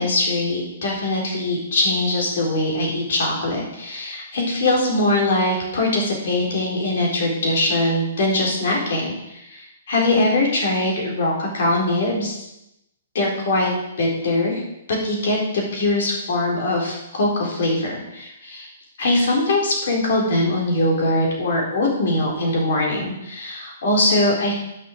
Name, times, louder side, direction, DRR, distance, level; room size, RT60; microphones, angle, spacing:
voice 1, 0.0-12.3 13.1-13.7 14.0-14.6 14.9-18.7 19.0-24.5, left 2 dB, 65° left, -1 dB, 4.2 m, -22 dB
9.0 x 6.4 x 6.5 m, 0.86 s
hypercardioid pair, 145°, 0 cm